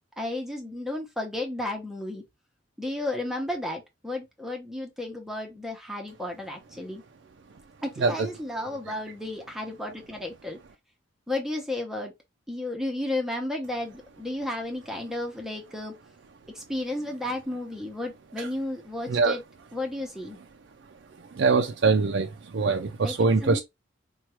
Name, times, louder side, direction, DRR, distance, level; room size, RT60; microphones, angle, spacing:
voice 1, 0.2-2.2 2.8-7.0 7.8-10.6 11.3-12.1 12.5-15.9 16.5-19.4 19.7-20.4 23.0-23.1 23.4-23.6, left 1 dB, ahead, 0.8 m, -33 dB
voice 2, 21.4-23.6, right 4 dB, 55° right, 0.4 m, -23 dB
4.5 x 2.3 x 2.9 m
head